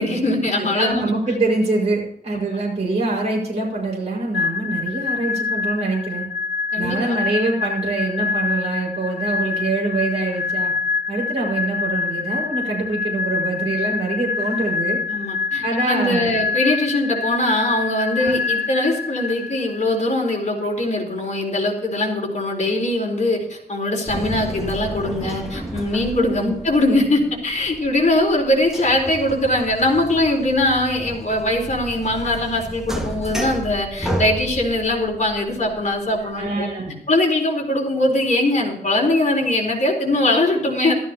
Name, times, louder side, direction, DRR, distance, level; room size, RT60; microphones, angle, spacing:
voice 1, 0.0-1.0 6.7-7.2 15.1-36.7 37.1-40.9, left 1 dB, 45° left, -1 dB, 4.1 m, -21 dB
voice 2, 0.8-6.3 6.8-10.7 11.1-15.0 15.6-16.3 18.2-18.3 26.2-26.5 36.4-36.9, right 3 dB, 40° right, -5 dB, 5.4 m, -24 dB
sound 1, 4.3-19.9, left 5 dB, 80° left, 0.4 m, -26 dB
sound 2, 24.1-36.5, equal, 5° right, 1.8 m, -32 dB
15.0 x 13.5 x 3.0 m, 0.78 s
wide cardioid pair, 135°, 17 cm